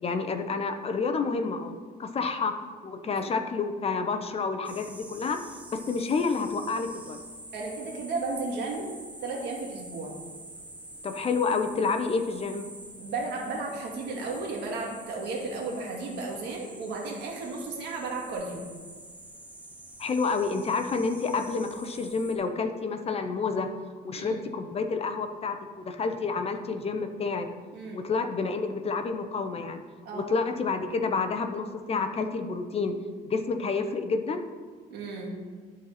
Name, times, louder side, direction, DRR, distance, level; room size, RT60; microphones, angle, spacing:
voice 1, 0.0-1.7 2.0-2.5 2.8-5.4 5.7-7.2 11.0-12.7 20.0-23.7 24.0-27.5 27.9-29.8 30.1-32.9 33.3-34.4, left 4 dB, 35° left, 7 dB, 0.7 m, -29 dB
sound 1, 4.6-22.4, right 1 dB, 10° right, 1.0 m, -47 dB
voice 2, 7.5-8.9 9.2-10.1 13.0-18.7 24.2-24.4 27.7-28.0 30.0-30.3 34.9-35.3, right 3 dB, 80° right, -1 dB, 1.9 m, -34 dB
12.0 x 4.1 x 4.2 m, 1.5 s
cardioid pair, 110°, 17 cm